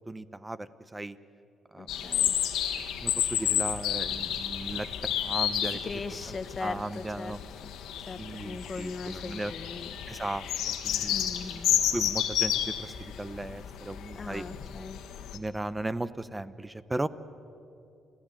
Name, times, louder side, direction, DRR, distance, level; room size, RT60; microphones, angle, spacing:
voice 1, 0.1-1.2 1.7-1.9 3.0-4.9 5.2-5.8 6.6-7.4 8.2-9.5 10.1-11.6 11.9-14.5 15.3-17.1, right 2 dB, 15° right, 15 dB, 0.8 m, -36 dB
voice 2, 1.8-2.3 5.7-7.4 7.6-7.7 8.1-9.9 11.1-11.7 14.1-15.0, left 4 dB, 35° left, 10 dB, 1.1 m, -39 dB
sound 1, 1.9-15.4, left 10 dB, 85° left, 1.7 m, -31 dB
29.0 x 15.0 x 9.2 m, 2.6 s
cardioid pair, 90°, 0 cm